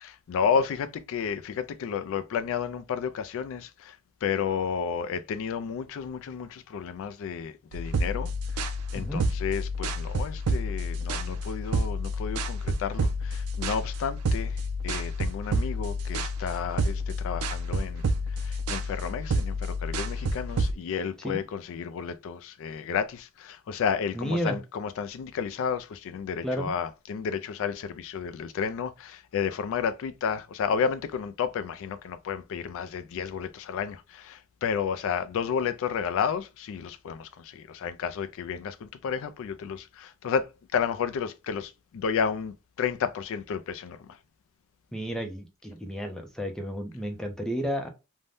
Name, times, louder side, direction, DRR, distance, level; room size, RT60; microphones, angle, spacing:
voice 1, 0.0-44.2, left 6 dB, 65° left, 0.3 m, -32 dB
sound 1, 7.7-20.7, equal, 75° right, 0.4 m, -29 dB
voice 2, 24.1-24.6 26.4-26.7 44.9-47.9, equal, 5° left, 0.5 m, -32 dB
2.6 x 2.1 x 3.3 m
head